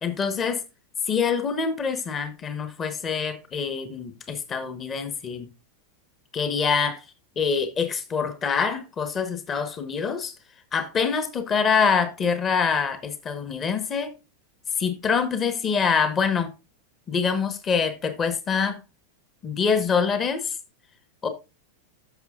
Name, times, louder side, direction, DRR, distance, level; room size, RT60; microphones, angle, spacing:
voice 1, 0.0-0.6 1.1-5.5 6.3-7.0 7.4-10.3 10.7-14.1 14.8-16.5 17.1-18.8 19.4-20.6 21.2-21.3, left 6 dB, 25° left, 1.3 m, -25 dB
14.5 x 6.3 x 2.4 m
figure-of-eight pair, 90°, 0 cm